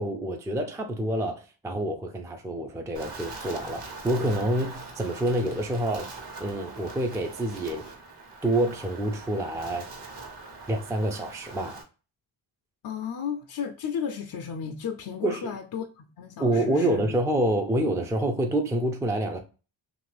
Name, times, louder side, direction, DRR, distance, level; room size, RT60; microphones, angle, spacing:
voice 1, 0.0-6.1 6.4-7.9 8.4-9.9 10.7-11.8 15.2-15.5 16.4-19.4, right 1 dB, 5° right, 0.4 m, -27 dB
Wind, 2.9-11.8, right 3 dB, 55° right, 1.1 m, -42 dB
voice 2, 12.8-17.0, left 7 dB, 50° left, 0.5 m, -34 dB
2.8 x 2.6 x 3.1 m
cardioid pair, 65°, 47 cm